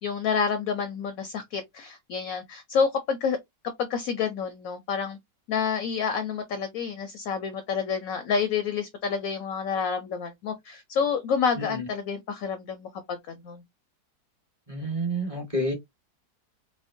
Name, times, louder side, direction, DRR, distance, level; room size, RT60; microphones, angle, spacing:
voice 1, 0.0-3.4 3.8-5.2 5.5-13.6, left 6 dB, 70° left, 0.8 m, -28 dB
voice 2, 14.7-15.7, right 1 dB, 25° right, 1.0 m, -29 dB
4.3 x 2.1 x 2.5 m
omnidirectional pair, 1.9 m